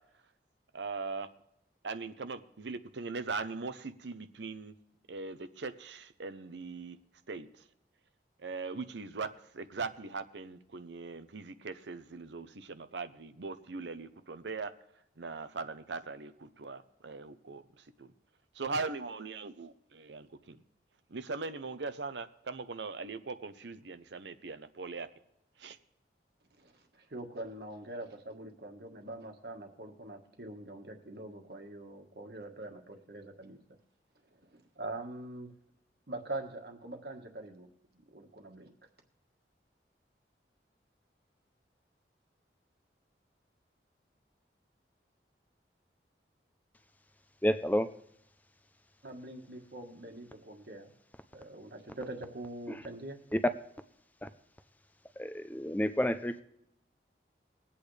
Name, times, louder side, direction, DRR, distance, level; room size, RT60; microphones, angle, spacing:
voice 1, 0.7-1.3 1.8-4.7 5.1-7.0 7.3-7.5 8.4-14.7 15.2-18.1 18.5-20.6 21.1-25.1 25.6-25.8, right 4 dB, 85° right, 12 dB, 0.7 m, -40 dB
voice 2, 26.6-33.6 34.4-35.5 36.1-37.7 37.9-38.7 49.0-50.9 51.3-53.2, right 2 dB, 65° right, 3 dB, 1.6 m, -44 dB
voice 3, 47.4-48.0 52.7-52.8 55.2-56.4, equal, 10° left, 10 dB, 0.5 m, -30 dB
21.5 x 8.6 x 3.3 m, 0.77 s
head